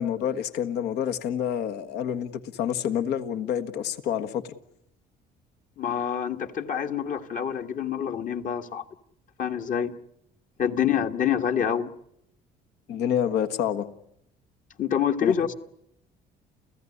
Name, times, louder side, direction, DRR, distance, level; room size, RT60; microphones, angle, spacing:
voice 1, 0.0-4.5 12.9-13.9 15.2-15.3, left 9 dB, 75° left, 8 dB, 1.6 m, -28 dB
voice 2, 5.8-8.8 9.4-9.9 10.6-11.9 14.8-15.5, left 8 dB, 50° left, 7 dB, 1.6 m, -26 dB
29.5 x 15.5 x 9.9 m, 0.76 s
cardioid pair, 110°, 17 cm